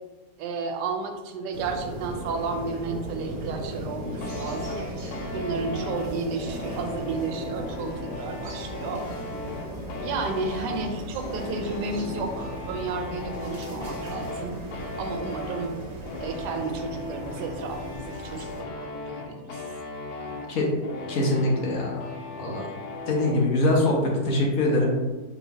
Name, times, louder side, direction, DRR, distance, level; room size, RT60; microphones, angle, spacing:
voice 1, 0.4-4.8 5.3-9.0 10.0-14.6 15.0-15.8 16.2-19.6 20.2-20.5, right 4 dB, 85° right, 4 dB, 1.2 m, -32 dB
sound 1, 1.5-18.6, right 1 dB, 65° right, 1.4 m, -37 dB
sound 2, 4.2-23.4, left 3 dB, 85° left, 1.2 m, -37 dB
voice 2, 21.1-22.7 23.1-24.9, left 1 dB, 65° left, -2 dB, 1.1 m, -23 dB
4.6 x 3.0 x 2.7 m, 1.3 s
omnidirectional pair, 1.8 m